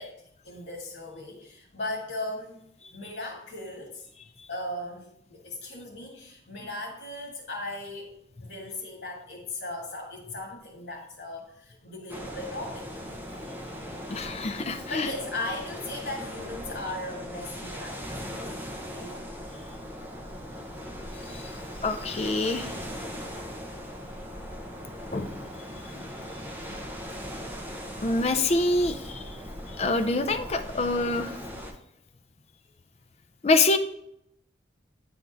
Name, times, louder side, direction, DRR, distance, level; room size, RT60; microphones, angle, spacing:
voice 1, 0.0-2.6 2.9-4.1 4.5-8.1 8.4-12.9 14.9-18.5 18.9-19.3 25.9-26.2, left 2 dB, 70° left, -2 dB, 1.5 m, -37 dB
sound 1, 12.1-31.7, equal, 10° right, 0.8 m, -39 dB
voice 2, 14.1-15.1 21.3-21.4 21.8-22.7 25.1-25.3 26.7-26.8 28.0-29.4 29.8-31.4 33.4-33.8, left 2 dB, 35° left, 7 dB, 0.5 m, -26 dB
9.6 x 3.6 x 3.9 m, 0.77 s
head